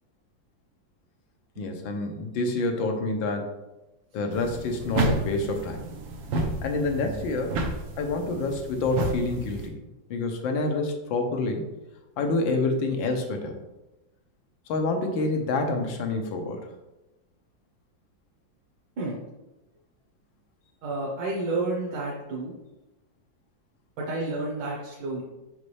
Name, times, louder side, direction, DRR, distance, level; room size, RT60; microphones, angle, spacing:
voice 1, 1.6-3.5 4.1-5.8 6.6-7.6 8.0-9.8 10.1-11.7 12.2-13.6 14.7-16.6, left 2 dB, 85° left, 4 dB, 1.6 m, -27 dB
sound 1, 4.3-9.7, right 2 dB, 90° right, 1.6 m, -31 dB
voice 2, 20.8-22.5 24.0-25.2, right 2 dB, 75° right, -3 dB, 1.6 m, -30 dB
5.5 x 5.3 x 3.3 m, 1.0 s
omnidirectional pair, 2.0 m